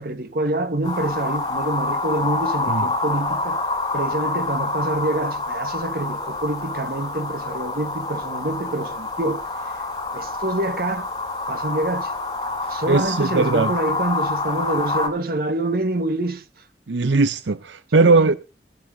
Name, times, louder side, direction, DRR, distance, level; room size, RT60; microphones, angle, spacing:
voice 1, 0.0-3.6 3.9-9.4 10.1-11.1 11.5-12.1 12.7-16.4 17.9-18.4, right 1 dB, 55° right, 1.5 m, -26 dB
sound 1, 0.8-15.1, left 2 dB, 20° left, 6.3 m, -27 dB
voice 2, 12.7-13.7 16.9-18.4, right 3 dB, 80° right, 0.7 m, -19 dB
20.0 x 12.5 x 2.7 m
head